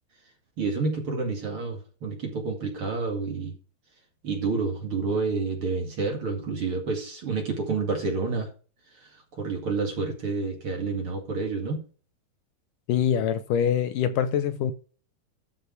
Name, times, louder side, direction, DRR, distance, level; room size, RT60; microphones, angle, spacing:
voice 1, 0.6-3.6 4.2-8.5 9.0-11.8, right 4 dB, 40° right, 2.6 m, -29 dB
voice 2, 12.9-14.7, left 8 dB, 75° left, 2.2 m, -24 dB
13.0 x 5.5 x 4.7 m
omnidirectional pair, 4.1 m